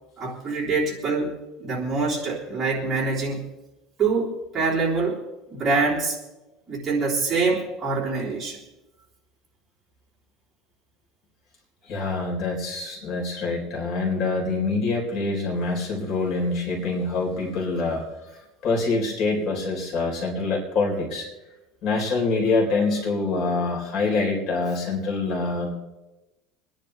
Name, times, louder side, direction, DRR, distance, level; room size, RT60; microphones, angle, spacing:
voice 1, 0.2-3.5 4.0-5.2 5.5-6.2 6.7-8.6, right 4 dB, 20° right, -5 dB, 3.6 m, -25 dB
voice 2, 11.9-18.0 18.6-21.3 21.8-25.7, left 3 dB, 50° left, -1 dB, 4.3 m, -25 dB
26.5 x 10.5 x 3.4 m, 1.1 s
cardioid pair, 145°, 0 cm